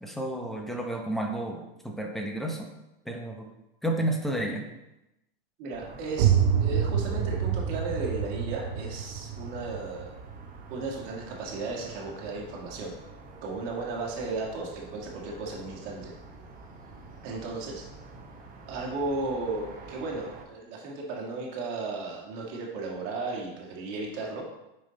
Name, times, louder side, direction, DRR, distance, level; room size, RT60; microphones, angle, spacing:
voice 1, 0.0-2.7 3.1-3.5 3.8-4.6, right 1 dB, ahead, 2 dB, 0.8 m, -31 dB
voice 2, 5.6-6.3 6.6-10.1 10.7-12.9 13.4-16.1 17.2-17.8 18.7-24.4, right 3 dB, 50° right, -1 dB, 2.0 m, -35 dB
sound 1, 5.7-20.4, right 3 dB, 30° right, 1.1 m, -47 dB
sound 2, 6.2-11.8, right 8 dB, 65° right, 0.8 m, -28 dB
5.5 x 4.9 x 3.9 m, 0.92 s
hypercardioid pair, 120°, 29 cm